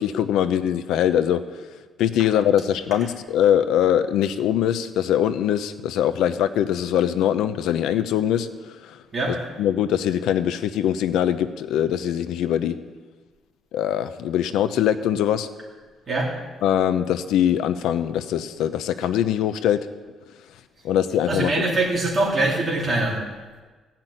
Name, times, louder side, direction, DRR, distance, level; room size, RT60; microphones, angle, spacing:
voice 1, 0.0-1.4 2.0-8.5 9.3-12.8 13.7-15.5 16.6-19.8 20.8-21.6, left 10 dB, 90° left, 11 dB, 0.7 m, -22 dB
voice 2, 21.3-23.2, right 2 dB, 25° right, -4 dB, 3.6 m, -23 dB
15.5 x 6.0 x 9.1 m, 1.3 s
cardioid pair, 160°, 0 cm